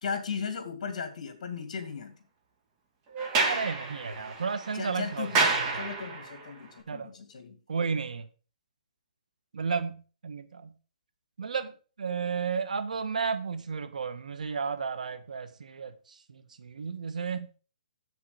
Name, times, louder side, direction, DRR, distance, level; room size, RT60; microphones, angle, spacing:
voice 1, 0.0-2.2 4.7-7.6, left 5 dB, 55° left, 2.9 m, -36 dB
Sliding door, 3.1-6.4, right 3 dB, 25° right, 2.3 m, -29 dB
voice 2, 3.4-5.8 6.9-7.1 7.7-8.3 9.5-10.0 10.2-10.7 11.4-11.7 12.0-16.0 16.3-17.5, right 5 dB, 80° right, 1.6 m, -33 dB
8.0 x 6.9 x 6.7 m
hypercardioid pair, 155°, 4 cm